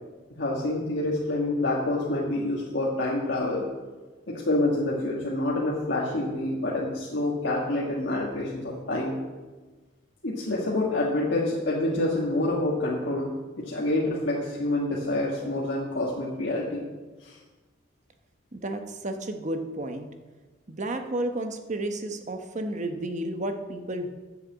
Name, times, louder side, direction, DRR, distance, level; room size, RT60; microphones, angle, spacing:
voice 1, 0.4-3.7 4.3-9.2 10.2-16.8 17.2-17.4, left 2 dB, 70° left, -4 dB, 1.6 m, -27 dB
voice 2, 18.5-20.1 20.7-24.1, right 1 dB, 40° right, 6 dB, 1.0 m, -32 dB
10.0 x 6.8 x 7.3 m, 1.3 s
head